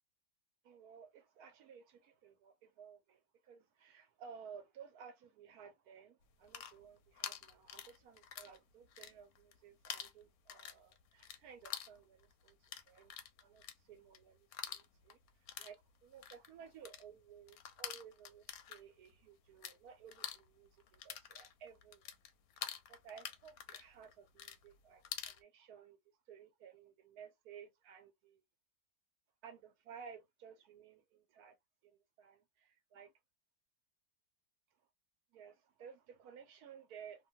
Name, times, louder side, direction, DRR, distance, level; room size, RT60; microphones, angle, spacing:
voice 1, 0.6-13.1 13.4-22.1 22.5-26.0 26.3-28.4 29.4-31.6 31.8-33.1 35.3-37.3, right 7 dB, 70° right, 1.1 m, -56 dB
Tic Tac sound slow, 6.3-8.6 8.8-9.6 9.8-19.8 20.0-25.4, left 10 dB, 70° left, 1.0 m, -47 dB
2.9 x 2.2 x 2.7 m
omnidirectional pair, 1.8 m